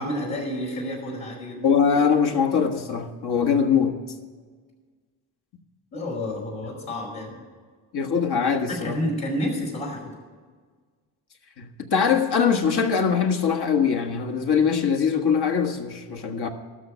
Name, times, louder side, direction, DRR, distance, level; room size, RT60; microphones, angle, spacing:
voice 1, 0.0-1.7 5.9-7.3 8.7-10.0, left 1 dB, 80° left, -3 dB, 5.0 m, -30 dB
voice 2, 1.6-4.0 7.9-9.0 11.6-16.5, left 6 dB, 55° left, 6 dB, 1.5 m, -22 dB
13.0 x 6.3 x 9.3 m, 1.5 s
supercardioid pair, 55°, 47 cm